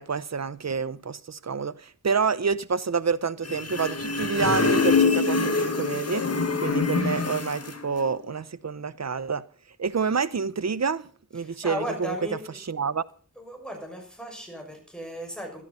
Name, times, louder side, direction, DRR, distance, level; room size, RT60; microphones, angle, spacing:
voice 1, 0.0-6.3 6.6-9.4 9.8-12.1 12.7-13.0, right 5 dB, 55° right, 0.8 m, -28 dB
sound 1, 3.4-7.8, left 4 dB, 50° left, 1.8 m, -24 dB
voice 2, 11.3-12.4 13.3-15.6, equal, 5° left, 6.5 m, -35 dB
13.5 x 12.5 x 5.6 m
cardioid pair, 40°, 32 cm